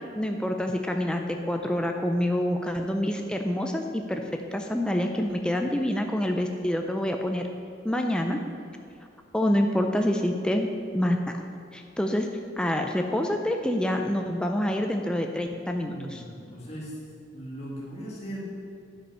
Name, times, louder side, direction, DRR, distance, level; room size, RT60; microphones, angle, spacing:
voice 1, 0.2-1.2 1.5-4.2 4.5-7.4 7.8-8.4 9.3-10.7 10.9-11.2 11.7-12.3 12.6-16.2, left 1 dB, 5° left, 3 dB, 0.4 m, -26 dB
voice 2, 15.9-17.0 17.3-18.4, right 1 dB, 35° left, -7 dB, 2.0 m, -38 dB
9.9 x 5.6 x 5.5 m, 2.5 s
head